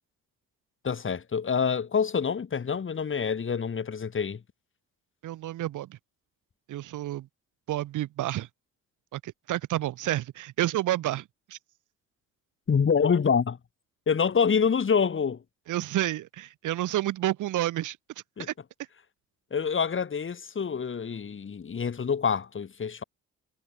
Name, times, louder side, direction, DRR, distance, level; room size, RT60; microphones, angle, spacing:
voice 1, 0.8-4.4 12.7-13.6 14.1-15.4 18.4-18.5 19.5-23.0, left 6 dB, 40° left, 5.0 m, -26 dB
voice 2, 5.2-6.0 6.7-7.3 7.7-8.5 9.1-11.2 11.5-11.6 15.7-18.0 18.4-18.5, right 14 dB, 80° right, 3.3 m, -29 dB
cardioid pair, 90°, 30 cm